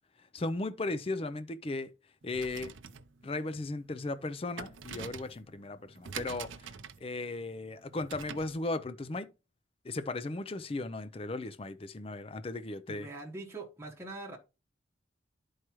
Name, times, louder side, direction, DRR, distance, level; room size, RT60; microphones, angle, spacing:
voice 1, 0.3-1.9 2.2-2.7 3.2-6.7 7.0-9.3 9.8-13.1, left 2 dB, 30° left, 0.4 m, -36 dB
sound 1, 2.2-8.6, right 6 dB, 75° right, 0.6 m, -46 dB
voice 2, 12.9-14.4, right 2 dB, 15° right, 1.4 m, -43 dB
11.0 x 4.7 x 3.0 m
head